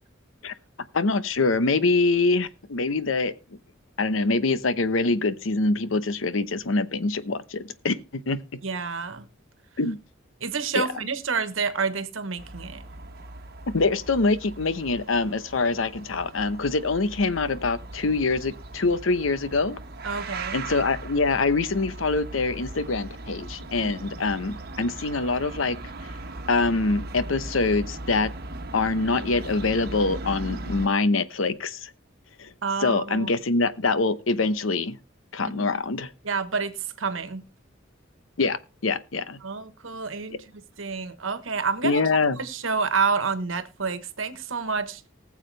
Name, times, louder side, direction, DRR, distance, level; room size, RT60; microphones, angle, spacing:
voice 1, 0.9-3.3 4.0-8.4 9.8-10.0 10.7-10.9 13.7-19.8 20.5-25.8 26.5-28.3 28.7-31.9 32.4-32.5 32.8-35.0 35.3-36.1 38.4-39.4 41.8-42.4, left 3 dB, 85° left, 0.9 m, -24 dB
voice 2, 8.6-9.3 10.4-12.8 20.0-20.6 23.8-23.9 32.6-33.3 35.5-35.7 36.2-37.4 39.4-40.4 40.8-42.0 42.4-45.0, right 5 dB, 85° right, 1.2 m, -28 dB
sound 1, 12.4-30.9, right 2 dB, 55° right, 1.2 m, -38 dB
19.5 x 7.3 x 3.3 m
head